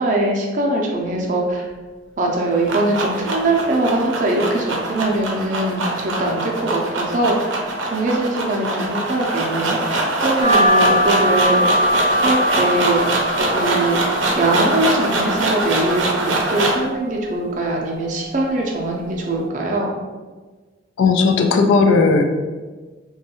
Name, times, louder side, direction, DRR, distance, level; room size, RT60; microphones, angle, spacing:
voice 1, 0.0-1.7 2.2-7.6 7.9-11.8 12.2-13.0 13.5-14.0 14.4-19.9, right 2 dB, 40° right, -1 dB, 0.5 m, -22 dB
sound 1, 2.3-16.9, right 2 dB, 90° right, 0.5 m, -23 dB
sound 2, 10.4-19.5, equal, 30° left, 0.6 m, -23 dB
voice 2, 21.0-22.2, left 4 dB, 80° left, 5 dB, 0.3 m, -15 dB
3.1 x 2.3 x 2.9 m, 1.3 s
head